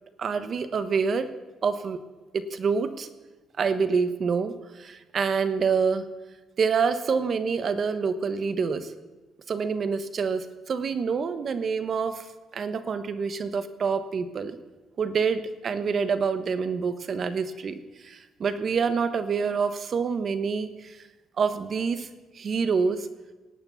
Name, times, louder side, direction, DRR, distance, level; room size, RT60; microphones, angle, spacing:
voice 1, 0.2-1.3 1.6-2.0 2.3-3.1 3.6-6.0 6.6-8.9 9.5-12.3 12.5-14.6 15.0-21.0 21.4-22.1 22.3-23.1, right 5 dB, 45° right, 12 dB, 1.1 m, -27 dB
18.0 x 8.8 x 7.1 m, 1.2 s
cardioid pair, 120°, 0 cm